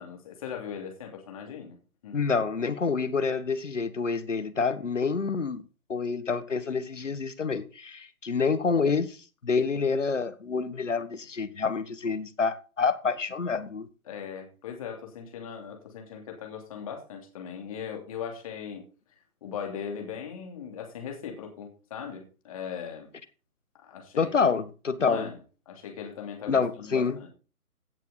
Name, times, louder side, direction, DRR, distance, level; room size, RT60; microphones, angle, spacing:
voice 1, 0.0-1.8 2.0-2.2 14.0-18.9 19.4-23.1 23.8-24.5 25.0-25.4 25.7-27.3, left 7 dB, 25° left, 3.0 m, -39 dB
voice 2, 2.1-5.6 5.9-9.2 9.4-13.9 24.2-25.3 26.5-27.2, left 5 dB, 55° left, 1.7 m, -27 dB
16.5 x 7.6 x 4.0 m
figure-of-eight pair, 150°, 44 cm